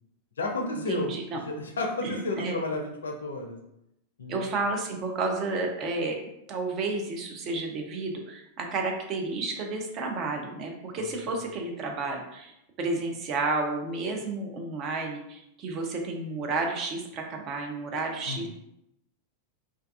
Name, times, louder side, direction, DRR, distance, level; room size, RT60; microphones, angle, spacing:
voice 1, 0.4-3.6 4.2-4.5 11.0-11.4 18.3-18.5, left 2 dB, 70° left, 2 dB, 0.4 m, -32 dB
voice 2, 0.9-1.4 2.0-2.6 4.3-6.2 6.5-12.5 12.8-18.5, right 3 dB, 35° right, 2 dB, 0.5 m, -31 dB
2.4 x 2.2 x 2.5 m, 0.82 s
figure-of-eight pair, 90°, 0 cm